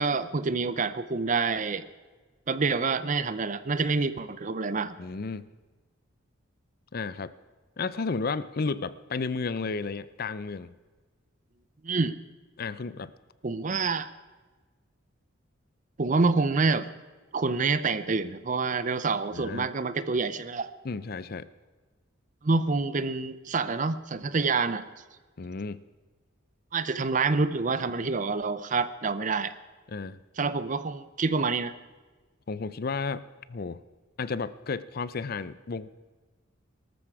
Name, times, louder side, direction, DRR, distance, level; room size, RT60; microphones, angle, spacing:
voice 1, 0.0-1.9 2.5-5.0 11.8-12.2 13.4-14.1 16.0-16.9 17.3-20.7 22.4-24.8 26.7-29.5 30.4-31.7, right 4 dB, 40° right, 14 dB, 0.6 m, -27 dB
voice 2, 5.0-5.5 6.9-7.3 7.8-10.8 12.6-13.1 19.3-19.7 20.8-21.5 25.4-25.8 29.9-30.2 32.5-33.2 33.5-33.8 34.2-35.9, left 4 dB, 50° left, 16 dB, 0.5 m, -33 dB
18.5 x 13.5 x 4.8 m, 1.3 s
head